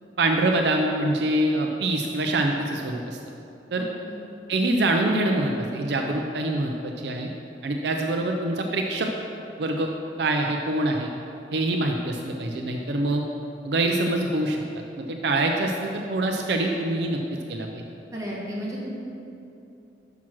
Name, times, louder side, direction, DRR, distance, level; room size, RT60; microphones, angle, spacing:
voice 1, 0.2-3.2 3.7-3.9 4.5-7.3 7.6-9.1 9.6-9.9 10.2-11.1 11.5-13.2 13.6-14.6 15.0-17.2 17.5-17.8, right 2 dB, 70° right, 2 dB, 0.5 m, -25 dB
voice 2, 3.8-4.2 18.1-18.9, equal, 20° right, -6 dB, 1.6 m, -33 dB
6.0 x 5.8 x 6.1 m, 2.8 s
head